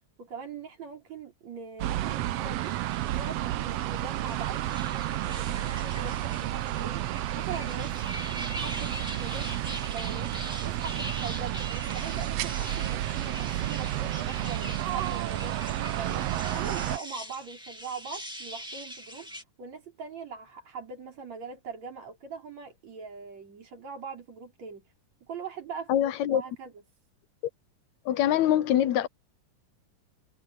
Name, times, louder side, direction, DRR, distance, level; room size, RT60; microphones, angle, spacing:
voice 1, 0.2-8.1 8.6-10.3 10.6-11.6 11.9-24.9 25.2-25.9 26.3-26.7, right 5 dB, 55° right, 6.1 m, -41 dB
sound 1, 1.8-17.0, right 14 dB, 80° right, 1.5 m, -31 dB
sound 2, 2.6-19.4, equal, ahead, 1.2 m, -42 dB
voice 2, 25.9-26.4 28.1-29.1, left 11 dB, 70° left, 1.9 m, -24 dB
omnidirectional pair, 3.7 m